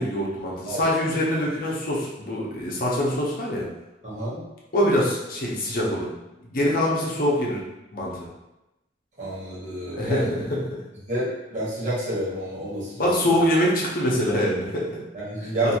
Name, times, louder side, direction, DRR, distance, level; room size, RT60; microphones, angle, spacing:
voice 1, 0.0-3.7 4.7-6.1 6.4-7.6 7.9-8.2 9.9-10.8 13.0-15.0 15.6-15.7, left 1 dB, 50° left, -4 dB, 0.7 m, -24 dB
voice 2, 4.0-4.5 9.2-10.3 11.1-13.4 15.1-15.7, right 1 dB, 45° right, -8 dB, 1.1 m, -30 dB
2.6 x 2.4 x 2.8 m, 0.96 s
head